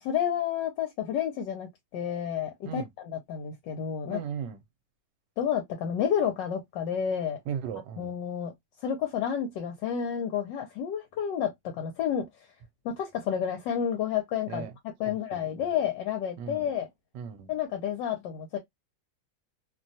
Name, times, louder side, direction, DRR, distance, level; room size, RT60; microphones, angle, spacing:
voice 1, 0.0-4.2 5.4-7.4 8.0-8.5 8.8-12.2 12.8-14.7 15.0-16.9 17.5-18.6, left 8 dB, 75° left, 1.2 m, -30 dB
voice 2, 4.0-4.6 7.5-8.1 14.5-14.7 15.1-15.4 16.4-16.6 17.1-17.5, right 8 dB, 75° right, 1.2 m, -36 dB
3.0 x 2.2 x 2.5 m
omnidirectional pair, 2.0 m